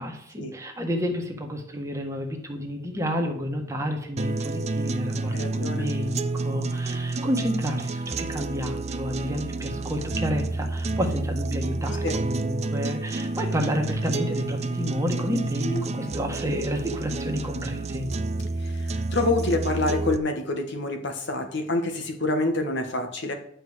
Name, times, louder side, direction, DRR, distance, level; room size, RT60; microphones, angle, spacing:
voice 1, 0.0-18.1, equal, 15° right, 2 dB, 1.5 m, -30 dB
sound 1, 4.2-20.2, right 2 dB, 30° right, 0.6 m, -29 dB
voice 2, 5.3-5.9 12.0-12.2 15.6-16.2 18.6-23.3, left 2 dB, 60° left, 5 dB, 1.7 m, -27 dB
11.0 x 5.5 x 8.0 m, 0.67 s
head